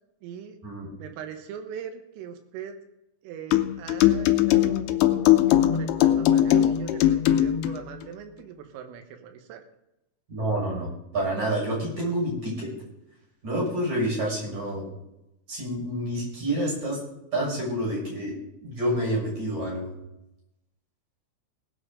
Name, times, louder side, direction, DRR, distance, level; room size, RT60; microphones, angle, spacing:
voice 1, 0.2-0.6 1.0-2.8 3.2-4.9 5.1-9.6, right 8 dB, 90° right, 6 dB, 3.8 m, -40 dB
sound 1, 3.5-7.8, left 12 dB, 90° left, 2.2 m, -20 dB
voice 2, 10.3-12.7 13.4-14.9 15.5-17.0 17.3-18.3 18.6-19.9, right 1 dB, 35° right, -4 dB, 7.9 m, -28 dB
19.0 x 7.8 x 5.1 m, 0.88 s
omnidirectional pair, 5.7 m